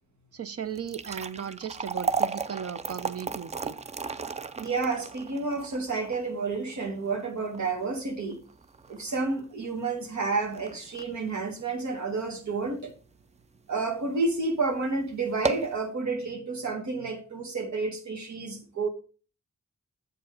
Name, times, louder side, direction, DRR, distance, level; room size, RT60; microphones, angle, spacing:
voice 1, 0.3-3.8, right 8 dB, 55° right, 0.7 m, -36 dB
sound 1, 0.7-13.0 13.4-13.5 14.2-14.4 14.7-14.8 15.2-15.8, right 5 dB, 25° right, 0.4 m, -35 dB
voice 2, 4.6-8.4 8.9-12.9 13.7-18.9, right 3 dB, 75° right, 2.1 m, -30 dB
7.8 x 4.7 x 4.9 m
cardioid pair, 90°, 29 cm